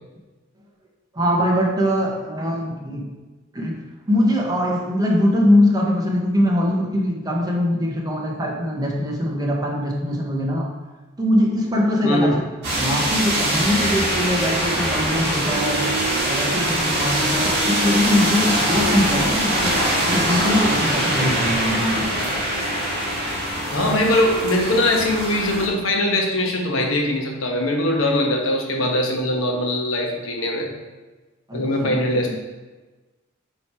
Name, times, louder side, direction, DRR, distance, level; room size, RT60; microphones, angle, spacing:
voice 1, 1.1-3.1 3.5-3.8 4.1-10.7 11.2-12.4 12.7-15.9 16.2-19.8 20.1-22.1 31.5-32.3, left 1 dB, 20° right, -1 dB, 1.0 m, -22 dB
voice 2, 12.0-12.4 23.7-30.7 31.5-32.3, left 1 dB, 85° left, 0 dB, 1.2 m, -21 dB
sound 1, 12.6-25.7, right 1 dB, 55° right, 1.7 m, -23 dB
Wind instrument woodwind instrument, 14.5-20.8, right 1 dB, 10° left, 1.1 m, -36 dB
7.7 x 3.2 x 4.4 m, 1.2 s
head